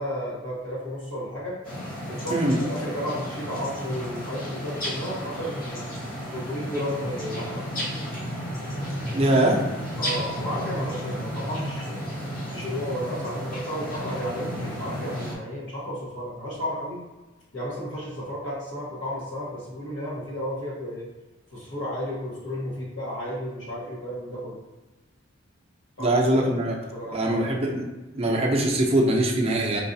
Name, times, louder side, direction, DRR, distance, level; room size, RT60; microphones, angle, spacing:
voice 1, 0.0-1.6 2.0-5.9 6.3-7.9 10.0-12.0 12.5-17.0 17.5-21.1 21.5-24.6 26.0-26.6 26.9-27.6, equal, 70° left, -7 dB, 1.4 m, -33 dB
sound 1, 1.6-15.3, equal, 45° left, 1.0 m, -33 dB
voice 2, 9.1-9.6 26.0-26.7 27.1-27.8 28.1-29.8, right 1 dB, 30° right, -1 dB, 0.5 m, -22 dB
4.6 x 2.4 x 2.7 m, 1.1 s
head